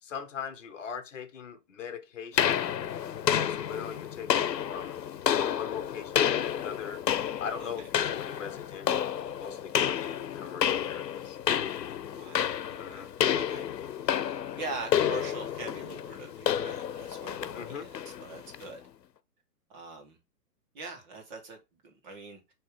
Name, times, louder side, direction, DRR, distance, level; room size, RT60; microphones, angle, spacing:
voice 1, 0.0-2.6 3.3-5.0 5.5-11.4 12.8-13.1 17.5-17.9, left 7 dB, 50° left, 1.3 m, -41 dB
sound 1, 2.4-18.7, left 9 dB, 90° left, 0.9 m, -30 dB
voice 2, 12.1-13.7 14.0-18.8 19.7-20.2 20.7-22.5, right 3 dB, 30° right, 1.7 m, -43 dB
6.7 x 3.2 x 5.0 m
hypercardioid pair, 160°, 48 cm